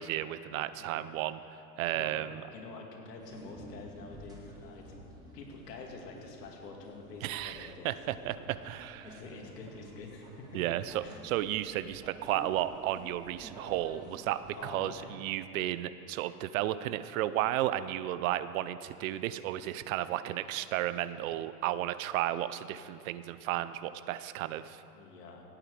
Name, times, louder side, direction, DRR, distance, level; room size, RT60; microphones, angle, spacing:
voice 1, 0.0-1.4 1.8-2.4 7.2-9.1 10.5-24.8, right 13 dB, 60° right, 14 dB, 0.7 m, -33 dB
voice 2, 0.7-1.1 1.9-2.2 2.5-5.0 5.3-8.4 9.0-10.6 11.0-11.2 14.5-15.2 20.2-20.4 24.5-24.6 24.9-25.4, left 3 dB, 90° left, 1 dB, 2.6 m, -47 dB
sound 1, 3.2-14.9, right 1 dB, 10° right, 2.0 m, -51 dB
17.0 x 8.8 x 4.8 m, 2.7 s
supercardioid pair, 130°, 47 cm